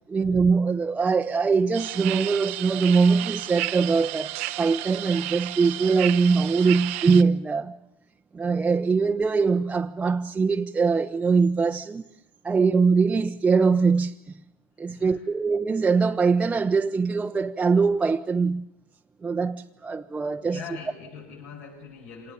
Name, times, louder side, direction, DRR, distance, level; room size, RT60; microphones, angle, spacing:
voice 1, 0.1-7.8 8.3-12.0 12.4-14.4 14.8-18.6 19.2-20.6, right 4 dB, 15° right, 0.9 m, -22 dB
sound 1, 1.7-7.2, right 17 dB, 75° right, 1.0 m, -32 dB
voice 2, 14.8-15.3 20.4-22.3, left 6 dB, 75° left, 7.8 m, -42 dB
26.5 x 19.5 x 8.6 m
supercardioid pair, 105°, 7 cm